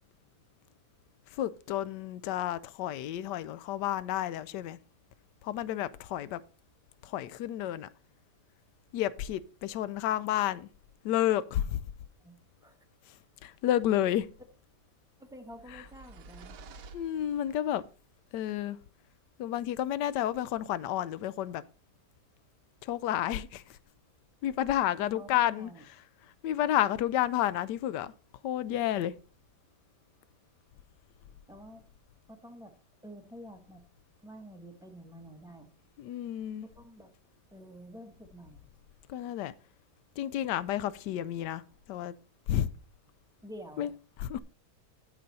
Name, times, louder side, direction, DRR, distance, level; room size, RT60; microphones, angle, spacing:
voice 1, 1.3-4.8 5.4-6.4 7.0-7.9 8.9-10.7 11.0-11.8 13.1-14.3 15.7-15.8 16.9-17.8 18.3-18.8 19.4-21.6 22.8-23.8 24.4-28.1 28.4-29.1 36.0-36.7 39.1-39.5 40.2-41.6 41.9-42.1 42.5-42.7 43.8-43.9 44.2-44.4, left 12 dB, 90° left, 1.2 m, -31 dB
voice 2, 12.2-12.7 15.2-16.7 25.0-25.8 31.5-31.8 32.3-32.7 33.0-33.8 34.2-35.7 36.6-37.1 37.5-38.7 43.4-43.9, equal, 5° right, 1.0 m, -49 dB
sound 1, 15.4-17.8, right 4 dB, 65° right, 1.1 m, -51 dB
9.0 x 7.7 x 4.1 m
omnidirectional pair, 1.8 m